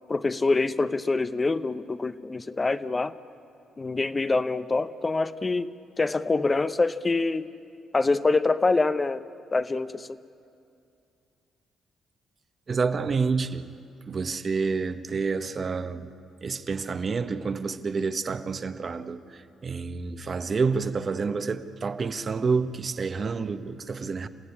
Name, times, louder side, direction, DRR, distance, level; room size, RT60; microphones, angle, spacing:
voice 1, 0.1-3.1 3.8-7.5 7.9-9.2 9.5-10.2, left 3 dB, 25° left, 0.7 m, -25 dB
voice 2, 12.7-13.7 14.1-16.1 16.4-24.3, right 4 dB, 40° right, 1.1 m, -28 dB
28.5 x 15.5 x 9.8 m
cardioid pair, 90°, 0 cm